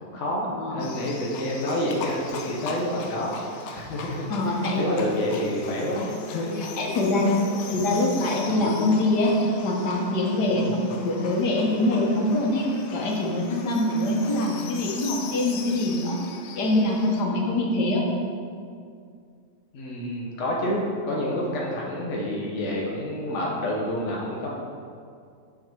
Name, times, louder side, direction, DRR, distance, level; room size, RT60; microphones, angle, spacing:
voice 1, 0.0-3.4 3.7-4.2 4.5-6.7 7.4-8.0 10.5-10.7 19.7-24.5, left 1 dB, 50° left, -3 dB, 1.2 m, -28 dB
voice 2, 0.6-0.9 4.3-4.8 6.6-7.4 7.7-9.3 9.6-12.7 12.9-16.2 16.6-18.0, left 2 dB, 85° left, -1 dB, 1.6 m, -24 dB
Livestock farm animals working animals, 0.8-17.2, left 4 dB, 65° left, 0.7 m, -39 dB
8.5 x 3.9 x 4.4 m, 2.3 s
omnidirectional pair, 1.7 m